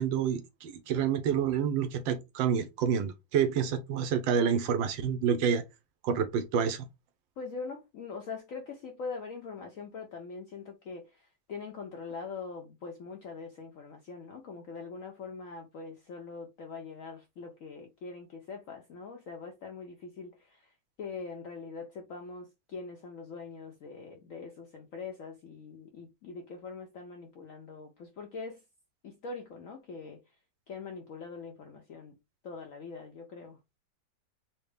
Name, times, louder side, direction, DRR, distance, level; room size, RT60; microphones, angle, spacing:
voice 1, 0.0-5.6 6.0-6.9, right 7 dB, 80° right, 1.3 m, -28 dB
voice 2, 7.4-28.6 29.0-30.3 30.7-32.2 32.4-33.6, left 4 dB, 70° left, 0.8 m, -43 dB
4.4 x 2.1 x 3.3 m
omnidirectional pair, 2.1 m